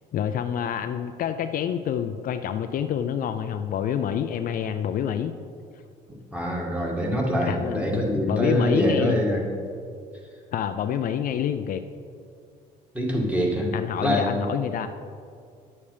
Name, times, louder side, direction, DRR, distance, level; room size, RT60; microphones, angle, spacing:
voice 1, 0.1-5.3 7.5-9.2 10.5-11.8 13.7-14.9, left 9 dB, 55° left, 9 dB, 0.5 m, -27 dB
voice 2, 6.3-9.5 12.9-13.7 14.0-14.4, equal, 10° right, -1 dB, 2.1 m, -24 dB
10.5 x 7.1 x 5.0 m, 2.3 s
cardioid pair, 110°, 17 cm